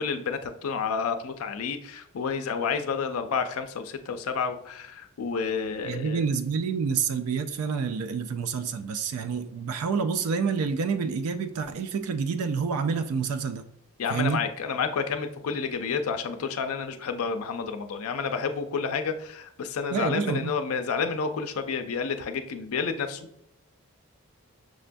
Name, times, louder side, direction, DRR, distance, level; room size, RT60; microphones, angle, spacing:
voice 1, 0.0-6.2 14.0-23.2, left 5 dB, 75° left, 0.4 m, -30 dB
voice 2, 5.9-13.6 14.1-14.4 19.9-20.5, right 5 dB, 80° right, 0.3 m, -28 dB
6.2 x 2.2 x 2.5 m
head